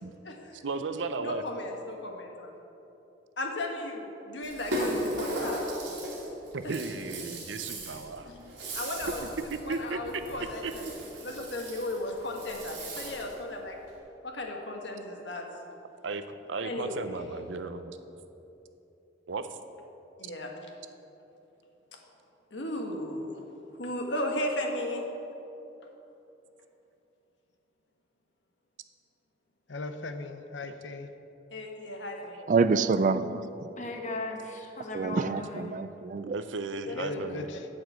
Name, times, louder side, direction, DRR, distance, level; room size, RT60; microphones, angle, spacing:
voice 1, 0.5-1.4 6.5-8.3 9.7-10.0 10.6-10.9 16.0-18.0 19.3-19.6 36.3-37.5, right 3 dB, 90° right, 0.6 m, -35 dB
voice 2, 1.2-2.5 3.4-5.6 8.7-9.2 9.6-10.9 11.2-13.8 14.2-15.5 16.6-17.1 20.2-20.5 22.5-23.4 23.8-25.0 31.5-32.4 36.9-37.2, left 1 dB, 75° left, 1.4 m, -35 dB
Rattle (instrument), 4.4-13.4, right 1 dB, 70° right, 2.8 m, -37 dB
voice 3, 29.7-31.1 36.9-37.7, left 3 dB, 90° left, 0.7 m, -38 dB
voice 4, 32.5-33.5 34.9-36.3, right 4 dB, 45° right, 0.3 m, -26 dB
voice 5, 33.8-35.8, left 2 dB, 40° left, 1.3 m, -37 dB
11.5 x 5.1 x 8.1 m
head